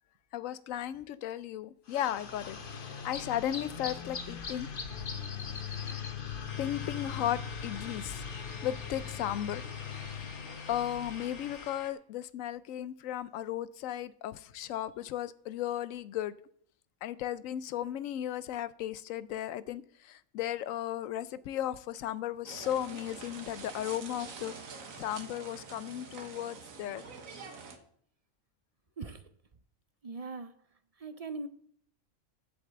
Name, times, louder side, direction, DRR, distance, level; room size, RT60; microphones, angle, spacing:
voice 1, 0.3-4.7 6.6-8.2 8.6-9.6 10.7-16.3 17.0-24.5 25.0-27.1, left 11 dB, 80° left, 1.0 m, -35 dB
sound 1, 1.9-11.8, left 6 dB, 45° left, 1.2 m, -40 dB
sound 2, 6.5-11.9, left 4 dB, 60° left, 1.3 m, -49 dB
sound 3, 22.5-27.8, right 5 dB, 85° right, 1.6 m, -46 dB
voice 2, 30.0-30.5 31.0-31.5, right 3 dB, 55° right, 0.4 m, -40 dB
7.9 x 7.4 x 7.8 m
omnidirectional pair, 1.4 m